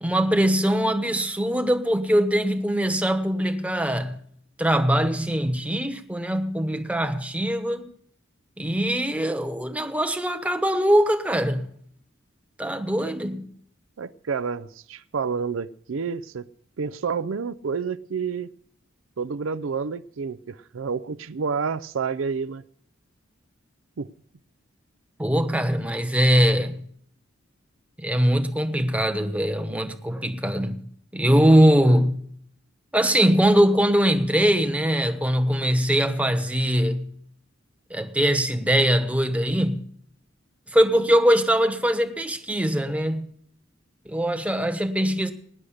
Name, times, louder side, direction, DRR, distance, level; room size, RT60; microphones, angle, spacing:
voice 1, 0.0-4.2 4.6-7.9 8.6-11.7 12.6-13.5 25.2-26.8 28.0-30.8 31.1-32.2 32.9-37.1 37.9-39.8 40.7-43.3 44.1-45.3, equal, 5° right, 1.1 m, -22 dB
voice 2, 14.0-16.4 16.8-18.5 19.2-22.6 24.0-24.1, right 5 dB, 75° right, 0.5 m, -29 dB
18.5 x 6.5 x 10.0 m
head